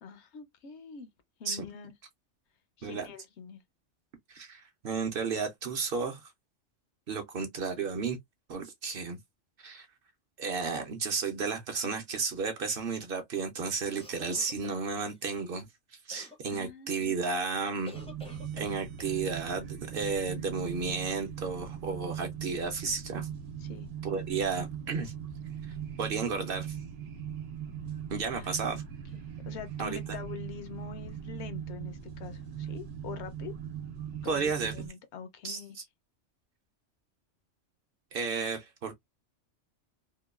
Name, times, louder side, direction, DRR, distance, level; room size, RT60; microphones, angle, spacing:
voice 1, 0.0-1.1 1.4-1.9 2.8-3.6 16.2-17.3 23.6-23.9 28.3-28.8 29.1-33.5 34.2-35.8, left 7 dB, 70° left, 0.8 m, -45 dB
voice 2, 4.3-6.3 7.1-8.2 8.5-9.2 9.6-9.9 10.4-15.7 16.1-18.0 18.6-23.3 24.0-25.1 25.7-26.8 28.1-28.8 29.8-30.0 34.2-34.7 35.4-35.8 38.1-38.9, right 5 dB, 60° right, 0.7 m, -33 dB
sound 1, 13.9-15.2 16.1-16.6 17.8-19.1, left 1 dB, 10° left, 0.4 m, -49 dB
sound 2, 17.9-34.9, right 8 dB, 75° right, 1.0 m, -40 dB
2.9 x 2.2 x 2.2 m
omnidirectional pair, 1.2 m